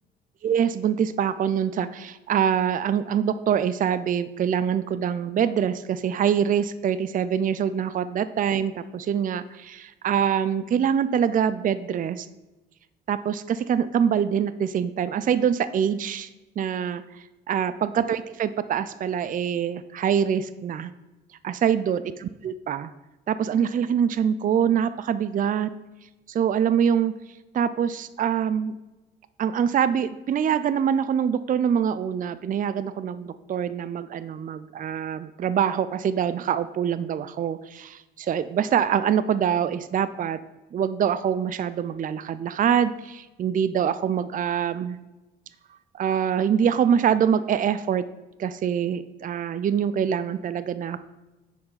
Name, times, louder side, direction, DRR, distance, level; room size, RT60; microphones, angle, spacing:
voice 1, 0.4-12.3 13.1-16.3 16.6-20.9 21.4-22.9 23.3-25.7 26.3-27.1 27.5-28.8 29.4-40.4 40.7-45.0 45.9-48.1 48.4-51.1, right 8 dB, 45° right, 14 dB, 0.4 m, -24 dB
9.7 x 4.8 x 5.5 m, 1.1 s
cardioid pair, 90°, 20 cm